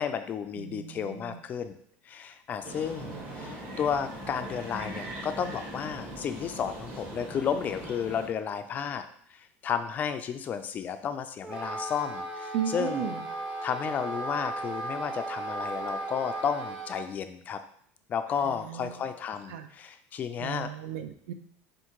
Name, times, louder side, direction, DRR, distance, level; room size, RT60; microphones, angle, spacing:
voice 1, 0.0-1.8 2.1-9.1 9.3-13.1 13.6-17.6 18.1-20.7, left 7 dB, 30° left, 9 dB, 0.3 m, -32 dB
voice 2, 0.6-1.4 3.0-3.5 12.5-13.2 18.4-19.0 19.5-19.7 20.4-21.3, right 9 dB, 75° right, 9 dB, 0.5 m, -36 dB
sound 1, 2.6-8.3, right 1 dB, 35° right, 1.1 m, -40 dB
Wind instrument woodwind instrument, 11.4-17.1, right 2 dB, 15° right, 0.6 m, -36 dB
4.7 x 2.5 x 4.5 m, 0.66 s
cardioid pair, 150°, 6 cm